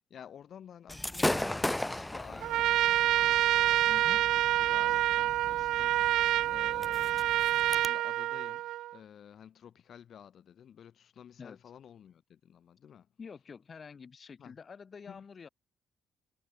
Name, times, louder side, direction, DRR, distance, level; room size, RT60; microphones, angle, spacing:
voice 1, 0.1-7.2 7.5-13.1 14.4-14.6 15.1-15.3, left 9 dB, 60° left, 4.0 m, -53 dB
Gunshot gunfire / Fireworks, 0.9-7.9, left 1 dB, 10° left, 0.9 m, -37 dB
Trumpet, 2.4-8.9, right 14 dB, 85° right, 0.7 m, -27 dB
voice 2, 3.9-4.2 11.4-11.6 13.2-15.5, left 5 dB, 40° left, 3.8 m, -48 dB
cardioid pair, 90°, 0 cm